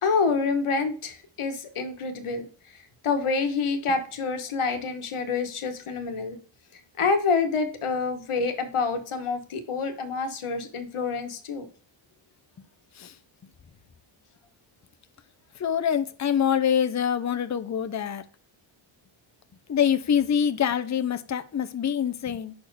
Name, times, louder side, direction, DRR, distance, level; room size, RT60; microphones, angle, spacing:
voice 1, 0.0-2.5 3.0-6.4 7.0-11.6, left 4 dB, 90° left, 1.3 m, -27 dB
voice 2, 15.6-18.2 19.7-22.5, left 8 dB, 35° left, 0.5 m, -25 dB
5.9 x 4.3 x 4.6 m
wide cardioid pair, 160°, 49 cm